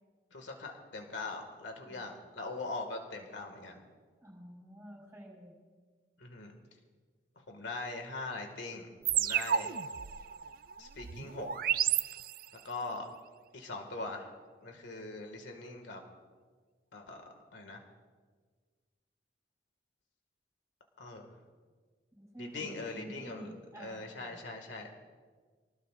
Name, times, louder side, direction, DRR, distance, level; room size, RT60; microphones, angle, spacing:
voice 1, 0.3-3.8 6.2-6.5 7.4-9.7 10.8-11.5 12.6-13.1 13.5-14.3 14.6-16.0 16.9-17.8 21.0-21.3 22.4-23.5 23.8-24.9, left 3 dB, 90° left, 4 dB, 2.0 m, -41 dB
voice 2, 4.2-5.5 22.1-24.4, equal, 10° right, -4 dB, 5.0 m, -49 dB
sound 1, 9.1-12.7, right 10 dB, 50° right, 0.4 m, -32 dB
24.0 x 19.0 x 2.6 m, 1.5 s
head